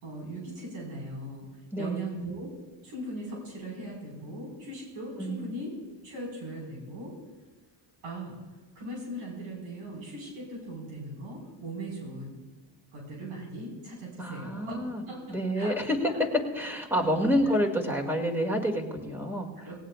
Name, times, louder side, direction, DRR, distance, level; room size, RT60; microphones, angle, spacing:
voice 1, 0.0-1.5 1.7-2.5 2.8-5.7 6.0-7.1 8.0-8.4 8.8-12.4 12.9-15.8 16.1-16.2 16.9-17.1 19.6-19.8, right 1 dB, 90° right, -1 dB, 5.3 m, -39 dB
voice 2, 1.7-2.2 5.2-5.5 14.2-15.0 15.3-16.0 16.5-19.5, equal, 5° right, 1 dB, 2.5 m, -28 dB
18.5 x 18.0 x 2.5 m, 1.3 s
cardioid pair, 115°, 48 cm